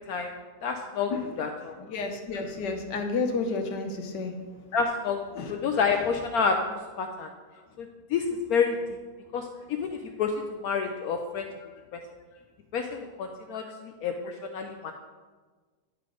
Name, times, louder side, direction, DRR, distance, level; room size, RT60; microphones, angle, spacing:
voice 1, 0.6-1.1 1.4-1.8 4.7-5.2 5.6-7.3 7.8-8.8 9.3-10.3 10.6-11.5 11.9-12.0 12.7-14.9, left 5 dB, 70° left, 4 dB, 1.0 m, -29 dB
voice 2, 1.8-4.4 5.4-5.7, left 4 dB, 90° left, 5 dB, 1.5 m, -31 dB
11.0 x 4.0 x 4.9 m, 1.4 s
omnidirectional pair, 1.8 m